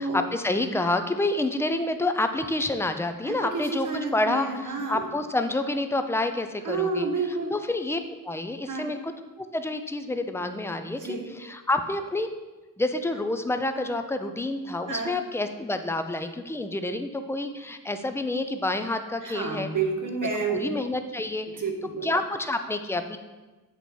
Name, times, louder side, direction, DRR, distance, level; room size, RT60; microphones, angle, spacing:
voice 1, 0.0-7.1 7.5-8.0 8.2-9.1 9.4-12.3 12.8-19.7 20.5-21.5 22.0-23.2, left 2 dB, 10° left, 7 dB, 0.4 m, -28 dB
voice 2, 3.2-5.0 6.6-7.5 8.7-8.9 10.9-11.3 14.9-15.1 19.2-20.7 21.6-22.1, right 4 dB, 65° right, 2 dB, 1.1 m, -30 dB
8.2 x 4.1 x 4.5 m, 1.2 s
wide cardioid pair, 145°, 33 cm